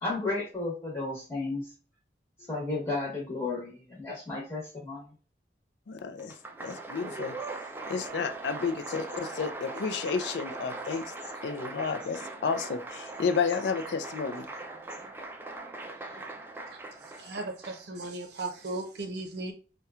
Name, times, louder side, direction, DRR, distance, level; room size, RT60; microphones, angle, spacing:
voice 1, 0.0-1.7 2.5-5.0 16.0-16.2, left 3 dB, 15° left, 1.1 m, -33 dB
voice 2, 5.9-7.4 7.9-11.1 11.4-14.5, left 5 dB, 80° left, 0.4 m, -31 dB
Applause, 6.2-18.1, right 3 dB, 10° right, 0.3 m, -40 dB
voice 3, 17.2-19.5, right 2 dB, 70° right, 0.6 m, -36 dB
4.3 x 2.2 x 2.3 m
head